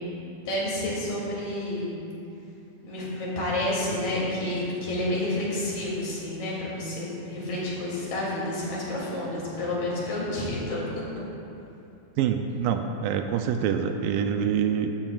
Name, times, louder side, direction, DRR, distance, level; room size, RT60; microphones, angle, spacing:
voice 1, 0.5-2.0 2.8-10.9, left 1 dB, 65° left, -6 dB, 4.4 m, -29 dB
voice 2, 12.2-14.9, right 8 dB, 80° right, 6 dB, 2.2 m, -26 dB
14.5 x 12.5 x 2.4 m, 2.8 s
omnidirectional pair, 4.1 m